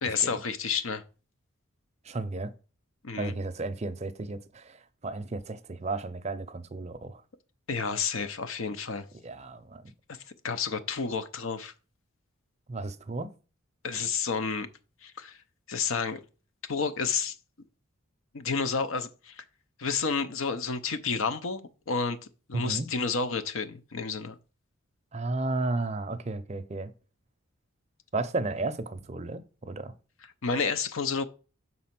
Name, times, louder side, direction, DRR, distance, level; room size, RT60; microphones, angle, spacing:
voice 1, 0.0-1.0 3.0-3.3 7.7-9.1 10.4-11.7 13.8-14.7 15.0-15.4 15.7-16.2 16.7-17.4 18.3-19.4 19.8-22.2 22.5-24.4 30.4-31.2, left 5 dB, 70° left, 0.7 m, -30 dB
voice 2, 2.1-2.5 3.2-4.8 5.0-7.2 9.2-9.8 12.7-13.3 22.5-22.9 25.1-26.9 28.1-29.9, right 2 dB, 30° right, 0.5 m, -33 dB
6.4 x 4.2 x 5.9 m
head